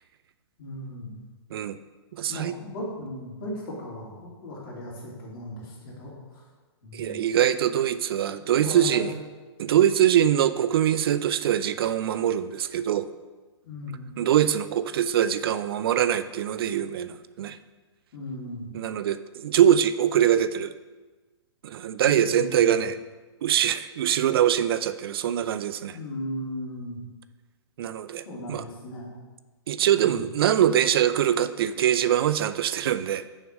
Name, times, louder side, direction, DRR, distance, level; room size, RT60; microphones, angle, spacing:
voice 1, 0.6-1.2 2.3-6.4 6.8-7.2 8.5-9.0 13.6-14.1 18.1-18.7 22.0-22.8 25.9-27.0 28.2-29.1 29.9-30.2, left 1 dB, 55° left, -4 dB, 2.7 m, -37 dB
voice 2, 2.1-2.6 6.9-9.1 9.6-13.1 14.2-17.6 18.7-20.7 21.6-23.0 23.4-26.0 27.8-28.6 29.7-33.2, right 10 dB, 60° right, 14 dB, 0.4 m, -23 dB
6.4 x 4.7 x 6.2 m, 1.3 s
hypercardioid pair, 140°, 14 cm